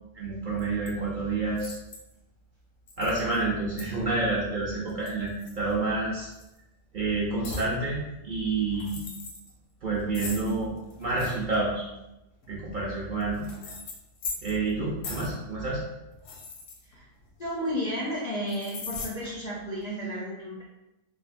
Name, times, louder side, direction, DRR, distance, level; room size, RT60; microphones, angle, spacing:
voice 1, 0.1-1.7 3.0-6.3 6.9-9.0 9.8-10.7 11.0-11.8 12.5-13.5 14.4-15.8, right 3 dB, 60° right, -6 dB, 0.5 m, -28 dB
sound 1, 0.6-0.9 1.6-2.1 2.9-3.4 3.8-3.9 4.9-5.9 6.3-6.6 7.4-7.7 8.7-9.5 10.1-11.4 12.4-14.7 15.0-15.4 16.1-17.4 18.5-19.1, left 3 dB, 80° left, 0.9 m, -40 dB
voice 2, 17.4-20.6, equal, 60° left, -5 dB, 0.4 m, -32 dB
3.2 x 2.0 x 2.4 m, 0.95 s
omnidirectional pair, 1.3 m